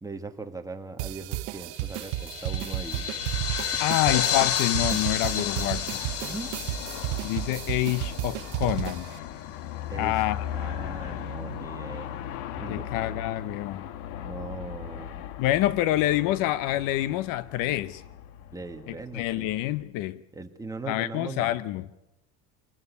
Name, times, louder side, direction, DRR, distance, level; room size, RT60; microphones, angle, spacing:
voice 1, 0.0-3.1 6.2-6.5 9.9-10.2 10.5-12.2 12.6-12.9 14.2-15.2 18.5-19.5 20.3-21.6, right 3 dB, 10° right, 1.8 m, -39 dB
sound 1, 1.0-9.2, right 17 dB, 80° right, 1.1 m, -33 dB
sound 2, 1.9-8.7, left 8 dB, 40° left, 1.6 m, -31 dB
Aircraft, 2.5-19.7, left 10 dB, 85° left, 1.7 m, -39 dB
voice 2, 3.8-6.0 7.2-9.1 10.0-10.4 12.7-13.8 15.4-18.0 18.9-20.2 20.9-21.9, left 15 dB, 65° left, 1.0 m, -27 dB
26.0 x 20.0 x 8.4 m
cardioid pair, 135°, 35 cm